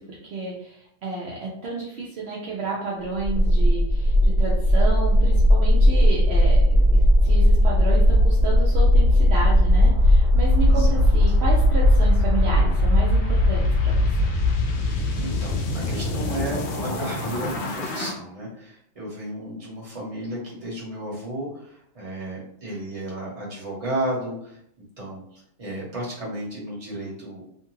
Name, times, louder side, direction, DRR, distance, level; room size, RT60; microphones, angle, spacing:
voice 1, 0.3-14.1, right 3 dB, 65° right, -4 dB, 0.8 m, -31 dB
sound 1, 3.2-18.1, left 1 dB, 60° left, 0.7 m, -18 dB
voice 2, 10.7-11.4 15.2-24.6 25.0-27.4, right 1 dB, 30° right, -6 dB, 1.0 m, -33 dB
2.6 x 2.3 x 3.0 m, 0.70 s
omnidirectional pair, 1.3 m